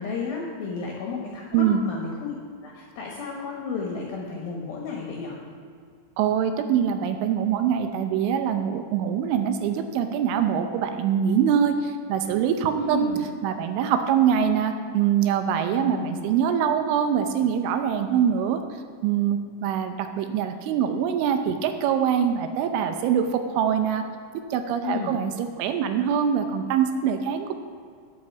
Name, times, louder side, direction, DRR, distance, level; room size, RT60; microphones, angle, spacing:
voice 1, 0.0-2.3 2.6-5.4 12.7-13.3 15.7-16.3 24.8-25.2, left 4 dB, 70° left, -2 dB, 2.4 m, -32 dB
voice 2, 6.2-13.1 13.4-18.6 19.0-24.0 24.3-27.6, right 8 dB, 80° right, 7 dB, 3.0 m, -24 dB
9.4 x 8.8 x 7.0 m, 2.2 s
omnidirectional pair, 5.9 m